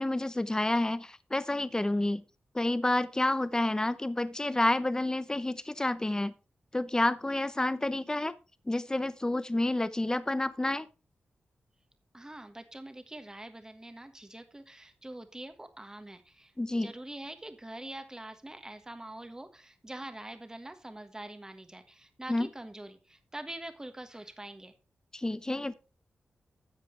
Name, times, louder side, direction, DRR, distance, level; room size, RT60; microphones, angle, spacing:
voice 1, 0.0-2.2 2.5-6.3 6.7-8.3 8.7-10.9 16.6-16.9 22.3-22.5 25.1-25.7, left 1 dB, 20° left, 0.7 m, -29 dB
voice 2, 12.1-24.7, right 1 dB, 15° right, 1.4 m, -44 dB
11.5 x 7.5 x 3.2 m
cardioid pair, 60°, 4 cm